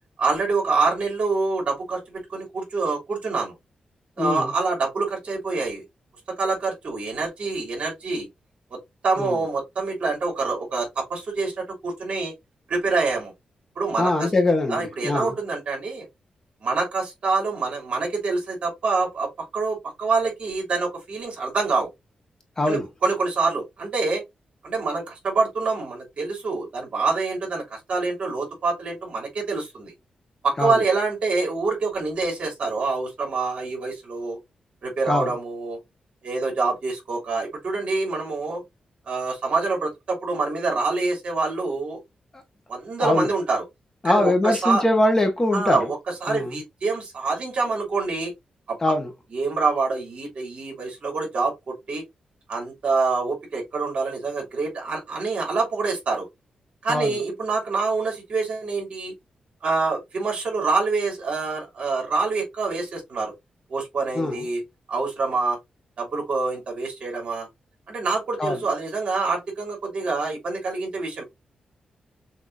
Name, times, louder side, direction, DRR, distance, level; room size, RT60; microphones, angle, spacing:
voice 1, 0.2-3.5 4.2-5.8 6.3-8.3 8.7-8.8 9.0-12.3 12.7-13.3 13.7-14.3 14.7-16.0 16.6-21.9 22.7-24.2 24.6-29.9 30.4-34.4 34.8-35.8 36.2-38.6 39.1-42.0 42.7-43.6 44.0-44.8 45.5-48.3 48.7-48.8 49.3-52.0 52.5-56.3 56.8-59.1 59.6-63.3 63.7-64.6 64.9-65.6 66.0-67.5 67.9-71.2, right 4 dB, 55° right, 3.2 m, -26 dB
voice 2, 4.2-4.5 9.2-9.4 14.0-15.3 22.6-22.9 30.6-30.8 35.1-35.3 42.3-42.4 43.0-43.3 44.0-45.9 46.3-46.6 48.8-49.1 56.9-57.2 64.1-64.4 68.4-68.6, left 2 dB, 20° left, 1.3 m, -22 dB
6.3 x 3.0 x 2.6 m
wide cardioid pair, 150°, 2 cm